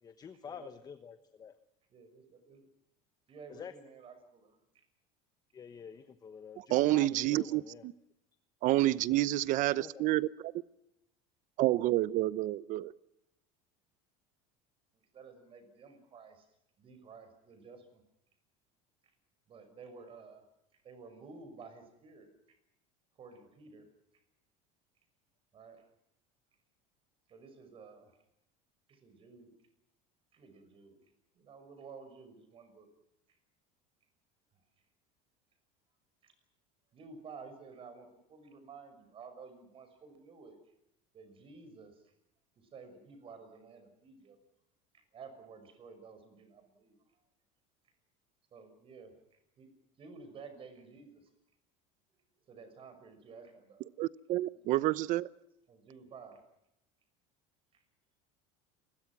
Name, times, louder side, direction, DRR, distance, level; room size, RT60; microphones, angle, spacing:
voice 1, 0.0-1.6 3.5-3.7 5.5-7.9 9.8-10.0, left 7 dB, 25° left, 11 dB, 1.1 m, -48 dB
voice 2, 1.9-2.7 3.3-4.8 15.1-16.4 16.8-18.0 19.5-20.5 20.7-22.3 23.2-23.9 24.1-24.2 25.5-25.8 27.3-28.2 28.9-29.5 30.3-31.0 31.3-32.9 34.5-34.6 36.2-36.3 36.9-40.6 41.1-42.1 42.6-44.4 44.9-47.0 48.5-49.7 50.0-51.3 52.5-53.9 55.7-56.4 57.7-57.8, right 4 dB, 35° right, 9 dB, 6.2 m, -52 dB
voice 3, 6.7-7.6 8.6-10.3 11.6-12.9 54.0-55.3, right 16 dB, 50° right, 19 dB, 0.8 m, -28 dB
28.5 x 22.0 x 6.1 m, 0.84 s
cardioid pair, 145°, 17 cm